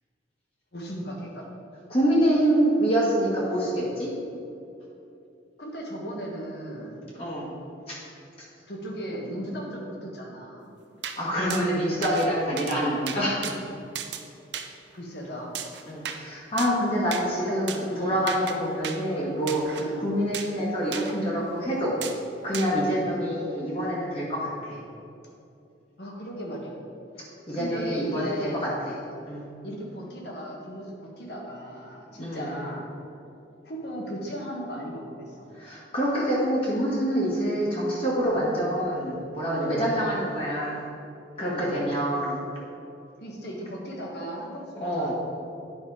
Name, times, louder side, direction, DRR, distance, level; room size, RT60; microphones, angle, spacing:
voice 1, 0.7-1.4 5.6-7.0 8.7-10.7 14.9-15.5 17.3-18.2 19.8-20.1 22.7-22.9 26.0-26.8 27.5-28.7 29.6-32.8 33.6-35.5 39.5-39.9 41.4-41.8 43.2-45.1, equal, 60° left, -1 dB, 1.6 m, -36 dB
voice 2, 1.9-4.1 7.1-7.5 7.9-8.0 11.2-13.6 15.9-22.0 22.4-24.8 27.5-28.9 29.2-29.5 32.1-32.5 35.5-40.9 41.4-42.4 44.8-45.1, equal, 30° left, -6 dB, 1.6 m, -26 dB
sound 1, 11.0-11.2 11.5-11.6 12.0-12.3 12.6-12.8 13.1-13.6 13.9-14.2 14.5-14.7 15.5-16.2 16.6-16.8 17.1-17.2 17.7-17.8 18.3-18.6 18.8-19.0 19.5-19.8 20.3-20.5 20.9-21.1 22.0-22.2 22.5-22.7, right 8 dB, 65° right, 0.6 m, -35 dB
9.7 x 5.4 x 4.9 m, 2.7 s
head